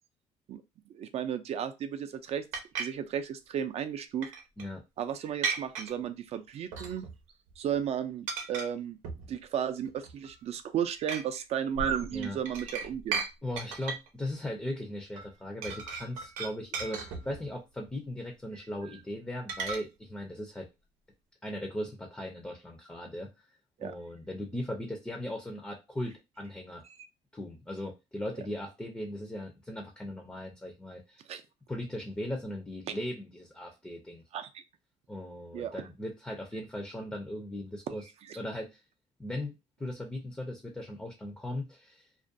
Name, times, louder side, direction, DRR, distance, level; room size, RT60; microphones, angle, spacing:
voice 1, 0.9-2.4 2.8-4.4 5.0-7.1 7.6-9.0 9.3-13.2 23.8-23.9 26.8-27.0 31.3-31.4 34.3-34.6 35.5-35.9 37.9-38.0 38.3-38.4, right 9 dB, 55° right, 9 dB, 0.4 m, -34 dB
sound 1, 2.5-2.9 4.2-4.6 5.4-5.9 6.7-7.2 7.5-7.8 8.3-8.7 9.0-9.3 9.8-10.4 11.1-11.2 11.7-13.3 13.6-14.1 15.2-15.3 15.6-17.5 19.5-19.8, right 5 dB, 90° right, 0.6 m, -35 dB
voice 2, 13.4-20.7 21.4-23.3 23.8-26.8 27.3-31.2 31.7-34.2 35.1-38.1 38.4-38.8 39.2-42.1, left 1 dB, 10° left, 2 dB, 0.5 m, -38 dB
2.4 x 2.2 x 2.5 m, 0.24 s
cardioid pair, 120°, 13 cm